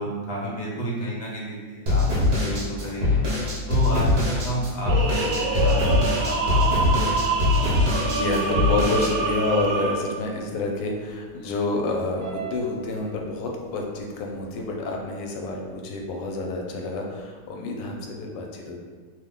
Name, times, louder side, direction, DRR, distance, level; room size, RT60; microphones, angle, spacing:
voice 1, 0.0-3.2 3.7-7.6, right 1 dB, 50° left, -5 dB, 0.9 m, -31 dB
sound 1, 1.9-9.1, left 2 dB, 50° right, 0.9 m, -22 dB
sound 2, 4.9-10.2 12.2-12.7, right 4 dB, 70° right, 1.1 m, -26 dB
voice 2, 8.0-18.8, left 2 dB, 85° left, 1 dB, 1.2 m, -28 dB
2.8 x 2.1 x 3.6 m, 1.5 s
omnidirectional pair, 1.8 m